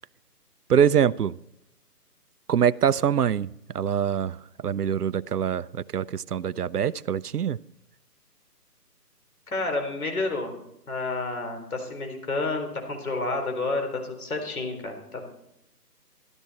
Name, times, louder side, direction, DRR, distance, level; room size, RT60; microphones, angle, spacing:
voice 1, 0.7-1.4 2.5-3.5 3.7-4.4 4.6-7.6, right 8 dB, 70° right, 0.6 m, -24 dB
voice 2, 9.5-10.5 10.9-15.2, left 3 dB, 60° left, 4.1 m, -30 dB
13.5 x 12.0 x 4.2 m
figure-of-eight pair, 160°, 48 cm